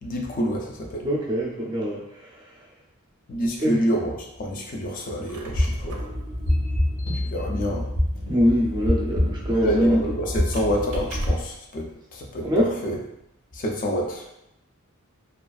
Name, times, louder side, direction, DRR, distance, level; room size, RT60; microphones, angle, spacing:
voice 1, 0.0-1.1 3.3-6.1 7.1-7.9 9.6-13.0 13.5-14.3, equal, 40° left, 1 dB, 0.4 m, -27 dB
voice 2, 1.0-2.5 3.6-3.8 8.3-10.0 12.4-12.7, equal, 20° right, -3 dB, 0.4 m, -24 dB
Squeak, 5.0-11.7, right 1 dB, 75° right, 0.4 m, -40 dB
sound 1, 5.4-11.3, left 1 dB, 65° left, 1.0 m, -26 dB
2.4 x 2.3 x 2.3 m, 0.84 s
head